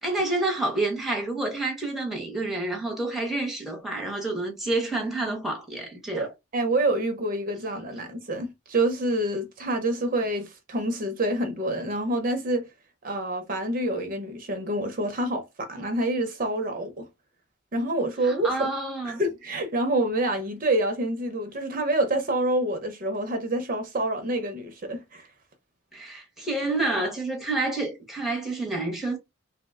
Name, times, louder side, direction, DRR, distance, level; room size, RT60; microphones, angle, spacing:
voice 1, 0.0-6.3 18.2-19.2 25.9-29.2, right 2 dB, ahead, 0.6 m, -28 dB
voice 2, 6.1-12.6 13.0-17.1 17.7-18.7 19.0-25.3, right 1 dB, 40° right, 0.5 m, -27 dB
2.8 x 2.0 x 3.4 m
head